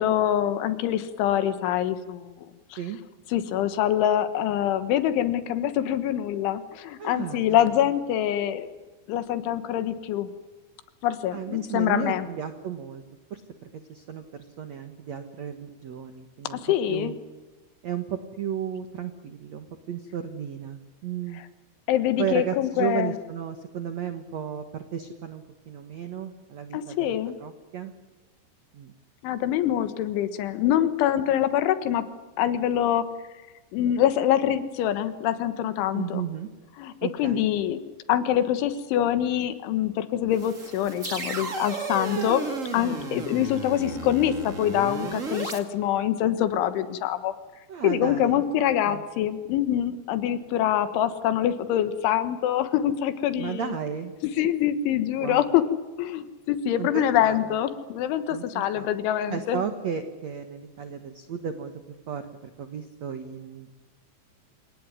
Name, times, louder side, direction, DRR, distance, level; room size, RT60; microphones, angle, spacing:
voice 1, 0.0-2.3 2.7-2.8 3.3-8.7 9.1-10.3 11.0-12.3 16.5-17.1 21.9-23.1 26.7-27.4 29.2-32.0 32.4-33.1 33.7-36.2 36.8-36.9 37.2-37.8 38.1-42.4 42.7-47.3 47.8-53.8 54.4-55.6 56.0-59.6, left 11 dB, 90° left, 11 dB, 3.8 m, -25 dB
voice 2, 7.0-7.8 11.3-13.0 13.3-13.4 13.9-16.6 16.9-17.1 17.8-21.4 22.2-27.9 28.7-28.9 35.9-36.5 37.0-37.5 42.2-42.3 47.7-48.4 48.8-49.0 53.4-54.1 55.2-55.5 56.8-57.5 58.3-58.9 59.3-61.7 62.1-63.7, right 8 dB, 70° right, 8 dB, 1.6 m, -34 dB
sound 1, 40.3-45.6, right 3 dB, 30° right, 1.5 m, -34 dB
27.5 x 18.0 x 9.8 m, 1.3 s
omnidirectional pair, 5.3 m